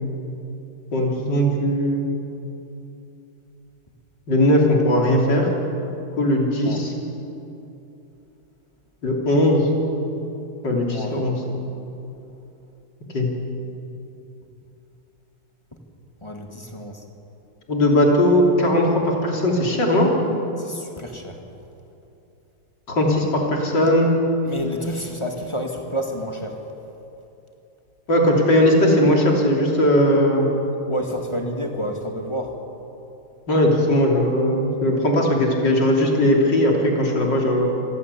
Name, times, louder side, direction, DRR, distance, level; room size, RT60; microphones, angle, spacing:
voice 1, 0.9-2.0 4.3-5.5 6.2-6.9 9.0-9.7 10.6-11.4 13.1-13.3 17.7-20.1 22.9-24.1 28.1-30.5 33.5-37.7, left 1 dB, 50° left, 0 dB, 3.8 m, -18 dB
voice 2, 10.9-11.2 16.2-17.0 20.6-21.4 24.4-26.6 30.9-32.6, equal, 15° left, 2 dB, 1.9 m, -29 dB
25.5 x 15.5 x 8.4 m, 2.9 s
omnidirectional pair, 2.4 m